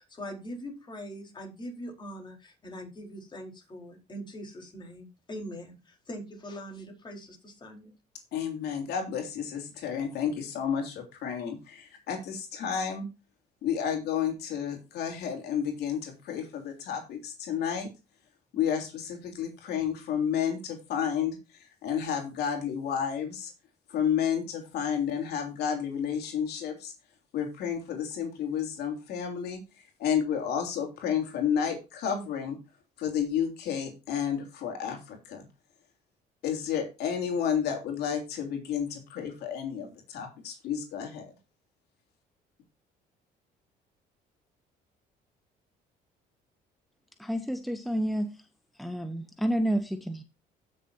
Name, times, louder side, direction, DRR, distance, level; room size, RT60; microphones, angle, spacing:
voice 1, 0.0-7.9, equal, 25° left, 1 dB, 4.2 m, -42 dB
voice 2, 8.3-13.1 13.6-17.9 18.5-23.5 23.9-26.9 27.3-29.6 30.0-32.6 33.0-35.4 36.4-41.3, left 8 dB, 75° left, 3 dB, 3.3 m, -31 dB
voice 3, 47.2-48.4 48.8-50.2, equal, ahead, 7 dB, 0.9 m, -30 dB
16.0 x 6.7 x 2.7 m, 0.29 s
cardioid pair, 110°, 17 cm